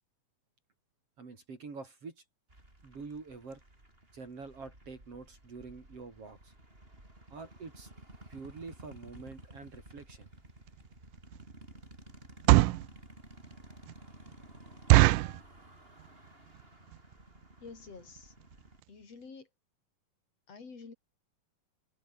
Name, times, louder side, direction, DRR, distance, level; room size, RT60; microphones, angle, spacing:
voice 1, 1.2-2.2 2.8-3.6 4.1-6.5 7.3-7.9 8.3-10.3, right 4 dB, 45° right, 4.6 m, -46 dB
sound 1, 2.5-18.8, right 1 dB, 15° right, 6.5 m, -54 dB
sound 2, 10.7-10.8 11.3-11.5 12.2-12.9 13.4-13.5 13.9-14.0 14.3-14.4 14.9-15.4 16.0-16.3 16.5-16.6 16.9-17.1 17.7-17.8 18.0-18.2 18.5-18.6 18.8-18.9, right 19 dB, 85° right, 2.2 m, -22 dB
voice 2, 17.6-18.4 18.9-19.5 20.5-20.9, left 4 dB, 50° left, 5.7 m, -48 dB
omnidirectional pair, 3.7 m